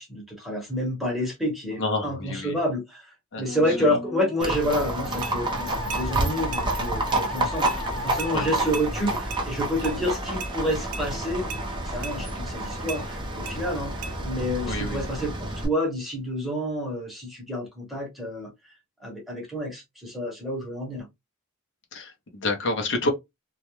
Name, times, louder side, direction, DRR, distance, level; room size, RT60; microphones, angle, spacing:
voice 1, 0.0-11.5 11.8-18.5 19.0-21.1, equal, ahead, 0.9 m, -29 dB
voice 2, 1.7-2.5 3.3-3.4 3.9-4.0 8.3-8.5 14.6-15.0 21.9-23.1, left 2 dB, 60° left, 0.7 m, -28 dB
Musical instrument, 3.5-8.7, left 2 dB, 20° left, 0.5 m, -36 dB
Livestock farm animals working animals, 4.4-15.7, right 2 dB, 20° right, 0.6 m, -29 dB
sound 1, 5.2-5.4 5.9-6.1 6.5-6.7 7.1-7.2 7.6-7.8 8.2-8.3 8.7-8.9 9.3-9.4 9.8-10.0 10.4-10.5 10.9-11.1 11.5-11.6 12.0-12.2 12.9-13.0 13.4-13.6 14.0-14.1, right 5 dB, 70° right, 0.5 m, -36 dB
2.3 x 2.1 x 2.9 m
head